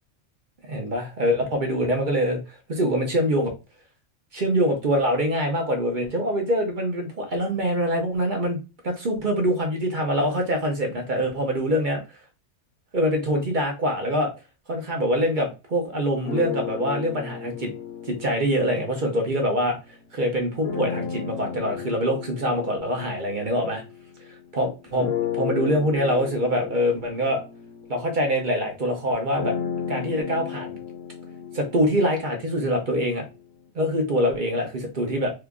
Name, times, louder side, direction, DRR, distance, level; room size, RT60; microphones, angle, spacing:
voice 1, 0.7-3.5 4.3-8.6 8.8-12.0 12.9-14.3 14.7-17.7 18.1-19.8 20.1-23.8 24.5-27.4 27.9-29.5 29.9-30.8 31.5-33.3 33.7-35.3, equal, 45° right, 2 dB, 0.8 m, -24 dB
sound 1, 16.2-19.8 20.6-24.4 25.0-32.9, left 8 dB, 60° left, 0.9 m, -34 dB
2.9 x 2.4 x 3.4 m, 0.28 s
omnidirectional pair, 1.3 m